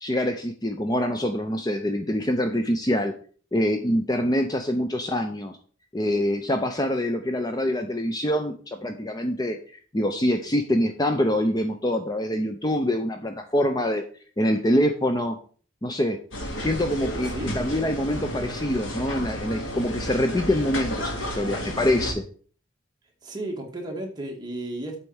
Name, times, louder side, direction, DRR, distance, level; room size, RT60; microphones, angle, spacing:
voice 1, 0.0-3.1 3.5-5.6 5.9-9.6 9.9-14.0 14.4-15.4 15.8-16.2 16.6-22.2, left 1 dB, 20° left, 6 dB, 0.6 m, -25 dB
sound 1, 16.3-22.1, equal, 80° left, 2.4 m, -32 dB
voice 2, 23.2-25.0, right 1 dB, 20° right, 0 dB, 1.9 m, -33 dB
8.0 x 4.5 x 7.1 m, 0.43 s
head